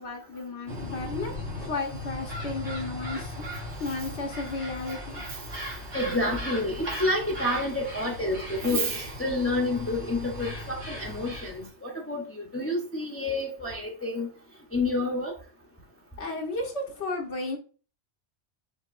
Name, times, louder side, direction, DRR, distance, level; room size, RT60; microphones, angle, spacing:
voice 1, 0.0-5.2 16.2-17.6, left 3 dB, 75° left, 1.3 m, -34 dB
sound 1, 0.7-11.7, left 1 dB, 80° right, 1.9 m, -37 dB
voice 2, 5.9-14.3 14.7-15.4, left 1 dB, 15° left, 0.8 m, -29 dB
5.1 x 4.1 x 2.5 m
omnidirectional pair, 1.2 m